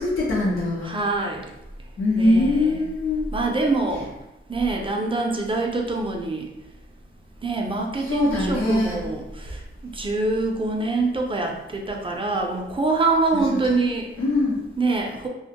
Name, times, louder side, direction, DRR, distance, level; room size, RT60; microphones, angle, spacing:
voice 1, 0.0-0.9 2.0-3.2 8.0-9.0 13.3-13.4 13.7-13.8 14.2-14.6, left 2 dB, 90° left, -9 dB, 0.7 m, -22 dB
voice 2, 0.8-1.5 2.2-2.8 3.3-4.1 4.5-6.5 7.4-14.1 14.8-15.3, right 3 dB, 25° right, 1 dB, 0.4 m, -25 dB
2.4 x 2.1 x 2.8 m, 0.93 s
wide cardioid pair, 80°, 21 cm